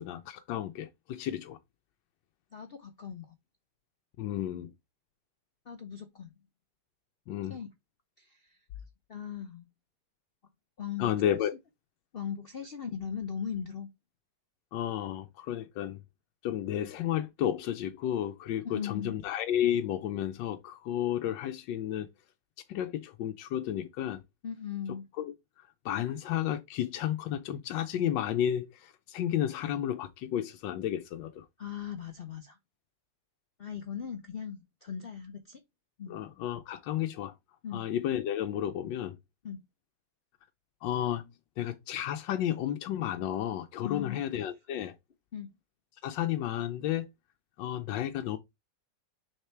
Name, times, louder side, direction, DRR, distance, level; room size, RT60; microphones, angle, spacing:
voice 1, 0.0-1.6 4.2-4.7 7.3-7.6 11.0-11.5 14.7-16.0 16.4-22.1 22.7-24.2 25.2-31.4 36.1-37.3 37.7-39.2 40.8-41.3 41.6-45.0 46.0-47.1 47.6-48.4, left 11 dB, 85° left, 1.3 m, -32 dB
voice 2, 2.5-3.3 5.7-6.3 7.5-7.7 8.2-8.6 9.1-9.7 10.8-11.4 12.1-13.9 18.6-19.2 24.4-25.0 31.6-32.6 33.6-35.6 36.0-36.2 37.6-37.8 39.4-39.6 43.8-44.3 45.3-45.5, left 8 dB, 55° left, 0.6 m, -39 dB
6.6 x 3.6 x 4.4 m
omnidirectional pair, 1.9 m